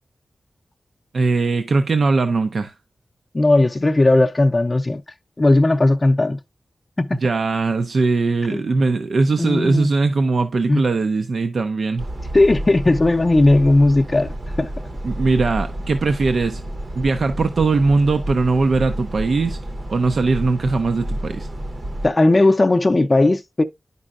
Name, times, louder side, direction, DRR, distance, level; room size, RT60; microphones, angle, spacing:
voice 1, 1.1-2.7 7.2-12.1 15.0-16.6 16.9-19.6 19.9-21.5, right 3 dB, 70° right, 0.6 m, -20 dB
voice 2, 3.3-5.0 5.4-6.4 7.0-7.2 8.5-8.6 9.4-9.9 10.7-10.8 12.3-14.3 14.6-14.7 22.0-23.6, left 2 dB, 30° left, 0.5 m, -16 dB
sound 1, 12.0-22.1, right 1 dB, 45° right, 0.8 m, -30 dB
9.9 x 5.4 x 2.4 m
wide cardioid pair, 105°, 0 cm